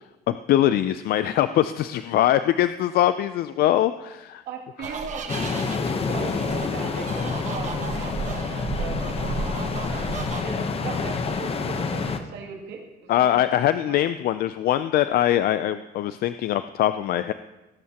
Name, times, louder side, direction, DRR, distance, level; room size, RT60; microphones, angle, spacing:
voice 1, 0.3-4.4 13.1-17.3, left 12 dB, 65° left, 12 dB, 0.4 m, -22 dB
voice 2, 4.5-5.5 5.8-8.4 8.7-9.2 10.4-13.5 13.8-14.0, right 5 dB, 75° right, 0 dB, 2.5 m, -38 dB
sound 1, 4.8-10.4, right 5 dB, 45° right, 1.2 m, -34 dB
sound 2, 5.3-12.2, left 4 dB, 35° left, 0.9 m, -28 dB
18.5 x 11.0 x 2.9 m, 1.1 s
cardioid pair, 110°, 17 cm